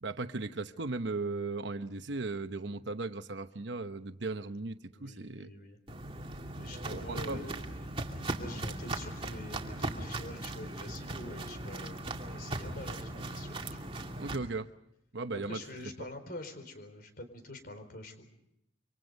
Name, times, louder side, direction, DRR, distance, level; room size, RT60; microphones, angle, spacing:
voice 1, 0.0-5.5 6.9-7.4 14.2-14.7 15.1-15.6, right 3 dB, 65° right, 9 dB, 0.9 m, -37 dB
voice 2, 4.9-5.8 6.5-13.9 15.4-18.3, left 1 dB, 50° left, 9 dB, 4.3 m, -46 dB
Walk footsteps, 5.9-14.4, right 2 dB, 30° right, 2.5 m, -38 dB
27.5 x 25.5 x 5.3 m, 0.79 s
head